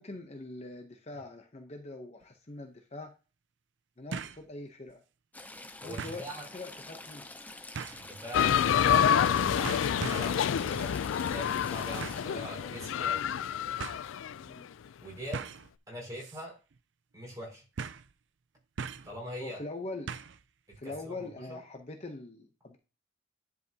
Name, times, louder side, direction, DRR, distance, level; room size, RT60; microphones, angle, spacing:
voice 1, 0.0-3.1 4.0-5.0 5.8-7.3 14.4-14.7 19.4-20.1 20.8-22.8, left 2 dB, 35° left, 0.8 m, -43 dB
sound 1, 2.2-2.3 4.1-4.5 4.9-5.0 6.0-6.3 7.7-8.1 9.1-9.3 9.6-10.4 12.0-12.3 13.3-13.4 13.8-14.0 15.3-15.7 16.2-16.4 16.7-16.8 17.8-18.1 18.8-19.2 20.1-20.4 20.7-20.8, right 5 dB, 65° right, 0.5 m, -39 dB
Stream / Trickle dribble, 5.3-12.2, left 2 dB, 10° left, 0.5 m, -47 dB
voice 2, 5.8-6.5 8.0-11.0 11.3-13.3 15.0-15.5 15.9-16.6 17.1-17.7 19.0-19.6 20.8-21.6, equal, 20° right, 4.5 m, -42 dB
sound 2, 8.3-14.4, left 8 dB, 85° left, 0.3 m, -28 dB
10.5 x 4.8 x 2.8 m
head